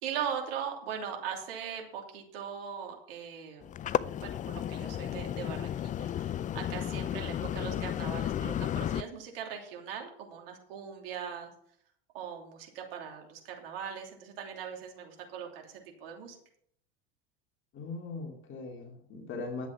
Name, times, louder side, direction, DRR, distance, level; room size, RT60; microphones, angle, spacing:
voice 1, 0.0-3.7 4.2-11.5 12.1-16.4, right 8 dB, 70° right, 2 dB, 3.0 m, -40 dB
sound 1, 3.6-9.0, left 10 dB, 25° left, 0.4 m, -33 dB
voice 2, 17.7-19.7, left 3 dB, 40° left, 3 dB, 2.4 m, -40 dB
11.0 x 7.9 x 5.9 m, 0.65 s
hypercardioid pair, 85°, 30 cm